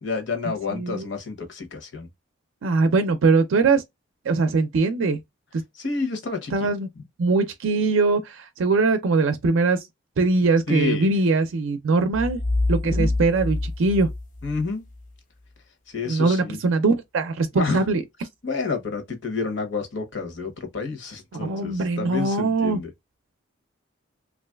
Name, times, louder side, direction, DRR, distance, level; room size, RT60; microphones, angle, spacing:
voice 1, 0.0-2.1 5.7-6.7 7.0-7.1 10.7-11.1 12.9-13.1 14.4-14.9 15.9-16.6 17.5-17.8 18.4-22.9, left 4 dB, 65° left, 0.9 m, -29 dB
voice 2, 0.7-1.1 2.6-3.8 4.3-5.2 6.5-6.9 7.2-9.8 10.2-12.4 12.7-14.1 16.1-18.0 21.3-22.8, right 3 dB, 75° right, 0.4 m, -21 dB
sound 1, 12.1-15.0, left 2 dB, 40° left, 0.4 m, -26 dB
3.0 x 2.4 x 2.2 m
head